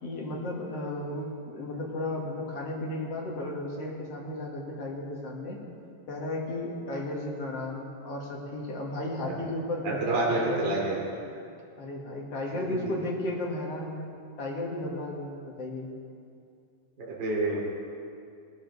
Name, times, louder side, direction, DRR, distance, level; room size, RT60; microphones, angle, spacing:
voice 1, 0.0-5.6 6.1-10.8 11.8-14.1 14.4-15.9, left 1 dB, 50° left, -2 dB, 2.5 m, -34 dB
voice 2, 9.8-11.0 12.7-12.8 17.0-17.6, right 2 dB, 35° right, -5 dB, 2.9 m, -28 dB
20.0 x 12.5 x 4.1 m, 2.4 s
omnidirectional pair, 4.1 m